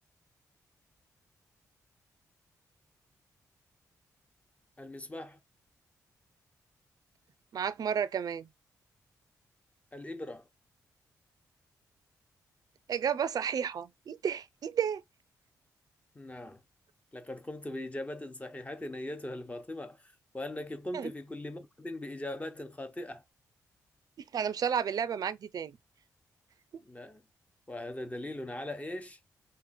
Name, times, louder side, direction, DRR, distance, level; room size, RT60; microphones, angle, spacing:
voice 1, 4.8-5.4 9.9-10.4 16.1-16.6 17.1-23.2 26.8-27.2 27.7-29.2, left 1 dB, 20° left, 1.0 m, -40 dB
voice 2, 7.5-8.5 12.9-15.0 20.9-21.1 24.3-25.7, right 8 dB, 60° right, 0.4 m, -32 dB
2.9 x 2.5 x 4.2 m
supercardioid pair, 55°, 7 cm